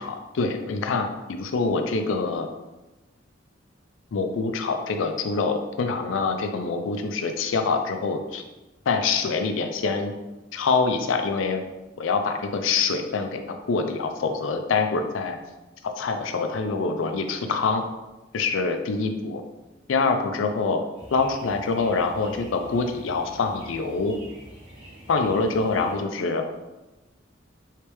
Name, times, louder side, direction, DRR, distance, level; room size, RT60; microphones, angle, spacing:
voice 1, 0.0-2.5 4.1-8.4 8.9-10.1 10.5-11.6 12.0-15.4 15.8-17.8 18.3-19.4 19.9-20.8 21.1-24.2 25.1-26.4, left 4 dB, 90° left, 6 dB, 0.4 m, -25 dB
sound 1, 21.0-26.0, right 1 dB, 30° right, 1.1 m, -46 dB
3.2 x 3.0 x 3.3 m, 1.0 s
head